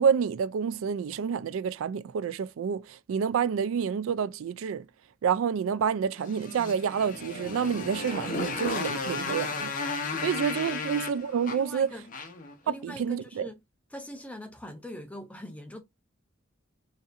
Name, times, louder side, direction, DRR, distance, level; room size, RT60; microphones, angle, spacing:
voice 1, 0.0-4.9 5.2-9.7 10.2-11.9 12.7-13.5, right 7 dB, 80° right, 0.3 m, -28 dB
Motorcycle, 6.2-12.5, left 4 dB, 40° left, 0.8 m, -34 dB
voice 2, 9.3-9.6 10.0-10.3 10.6-10.8 11.5-12.1 12.6-13.6 13.9-15.8, left 1 dB, 5° left, 0.3 m, -43 dB
4.1 x 2.5 x 2.5 m
head